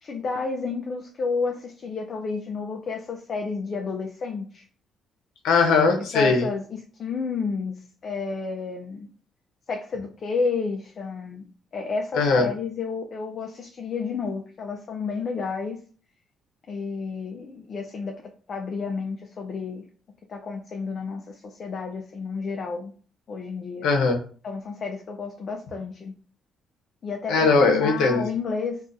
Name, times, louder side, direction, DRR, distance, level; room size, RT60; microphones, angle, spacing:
voice 1, 0.0-4.6 6.1-7.7 8.0-9.1 9.7-11.4 11.7-15.8 16.7-18.2 18.5-19.8 20.3-22.9 23.3-23.9 24.4-26.1 27.0-28.8, left 4 dB, 50° left, 2 dB, 0.4 m, -31 dB
voice 2, 5.4-6.5 12.2-12.5 23.8-24.2 27.3-28.2, left 4 dB, 85° left, 3 dB, 0.7 m, -20 dB
3.5 x 2.4 x 2.6 m, 0.42 s
cardioid pair, 100°, 0 cm